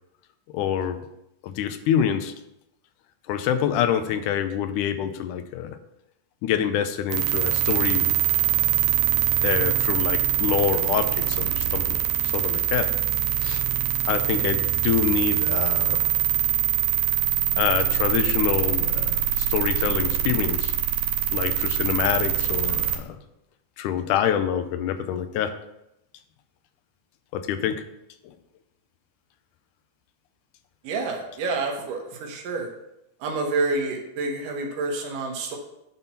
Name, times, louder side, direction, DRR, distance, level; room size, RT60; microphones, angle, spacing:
voice 1, 0.5-1.0 1.4-2.3 3.3-5.8 6.4-8.1 9.4-12.9 13.4-13.6 14.1-16.1 17.6-20.7 21.3-23.2 23.8-25.6 27.3-27.9 28.2-28.3, left 9 dB, 80° left, 9 dB, 2.1 m, -26 dB
sound 1, 7.1-23.0, right 11 dB, 70° right, 2.0 m, -23 dB
voice 2, 30.8-32.7 33.2-35.6, right 3 dB, 90° right, 1 dB, 2.7 m, -28 dB
9.2 x 4.3 x 5.7 m, 0.85 s
omnidirectional pair, 3.7 m